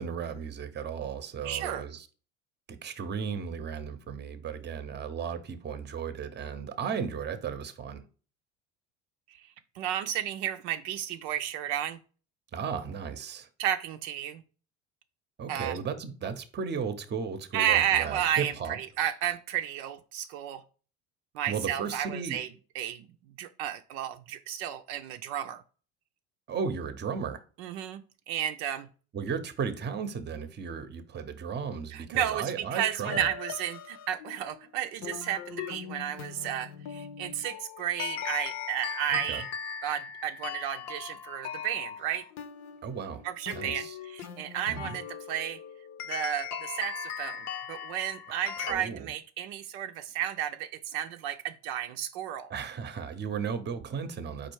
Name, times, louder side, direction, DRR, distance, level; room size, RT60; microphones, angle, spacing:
voice 1, 0.0-2.1 2.7-8.0 12.5-13.5 15.4-18.8 21.5-22.4 26.5-27.4 29.1-33.3 39.1-39.4 42.8-43.3 43.5-44.0 44.7-44.9 48.7-49.1 52.5-54.5, right 6 dB, 30° right, 0.7 m, -35 dB
voice 2, 1.4-1.8 9.8-12.0 13.6-14.4 15.5-15.8 17.5-20.6 21.3-22.5 22.7-23.1 23.4-25.6 27.6-28.0 28.3-28.9 31.9-39.4 39.8-42.3 43.2-45.6 46.1-52.5, right 10 dB, 75° right, 0.5 m, -32 dB
sound 1, 33.0-48.7, left 8 dB, 50° left, 0.7 m, -39 dB
4.4 x 2.4 x 4.6 m
supercardioid pair, 85°, 34 cm